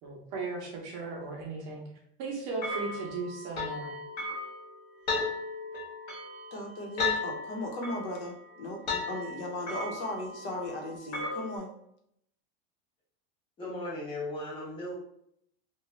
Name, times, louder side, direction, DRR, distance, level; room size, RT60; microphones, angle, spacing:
voice 1, 0.0-1.8 2.2-4.0, right 3 dB, 40° right, -1 dB, 0.6 m, -37 dB
sound 1, 2.6-11.6, left 3 dB, 45° left, 1.0 m, -36 dB
voice 2, 6.5-11.7, left 1 dB, 85° left, 1 dB, 0.9 m, -37 dB
voice 3, 13.6-14.9, left 1 dB, 15° left, -6 dB, 0.8 m, -37 dB
2.5 x 2.2 x 3.0 m, 0.73 s
supercardioid pair, 180°, 34 cm